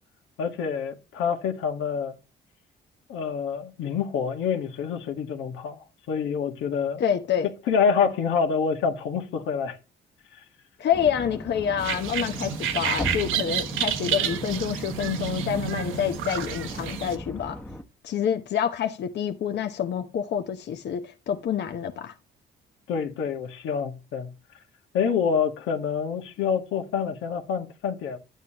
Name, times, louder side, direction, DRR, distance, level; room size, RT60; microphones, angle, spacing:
voice 1, 0.4-2.2 3.1-7.0 7.7-9.8 10.3-10.4 22.9-24.3 24.9-28.2, left 6 dB, 90° left, 1.6 m, -27 dB
voice 2, 7.0-7.5 10.8-17.6 18.0-22.1, left 8 dB, 60° left, 0.9 m, -27 dB
sound 1, 10.9-17.8, equal, 10° left, 1.0 m, -38 dB
sound 2, 11.8-17.2, right 9 dB, 85° right, 1.2 m, -30 dB
10.5 x 8.2 x 2.9 m
cardioid pair, 90°, 20 cm